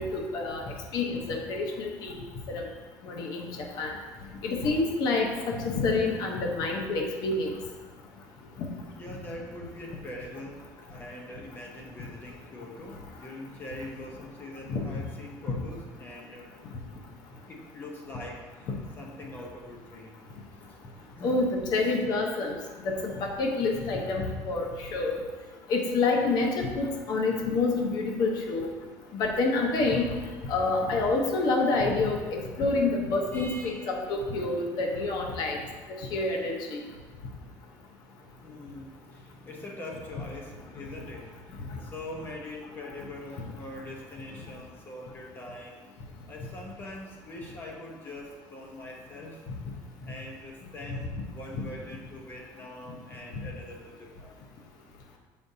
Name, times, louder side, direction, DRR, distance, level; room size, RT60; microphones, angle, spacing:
voice 1, 0.0-0.6 0.9-2.2 2.5-2.6 3.0-3.5 3.8-3.9 4.4-7.5 8.6-8.7 14.7-14.8 15.5-15.6 21.2-22.6 22.8-24.7 24.9-25.2 25.7-28.7 29.1-30.1 30.5-35.6 36.1-36.8, left 3 dB, 55° left, 1 dB, 0.9 m, -27 dB
voice 2, 8.9-16.5 17.3-21.3 21.8-21.9 24.2-24.3 33.3-33.9 38.2-45.9 46.3-49.4 50.0-54.4, left 1 dB, 25° left, 0 dB, 0.8 m, -43 dB
7.1 x 5.2 x 2.7 m, 1.4 s
cardioid pair, 140°, 8 cm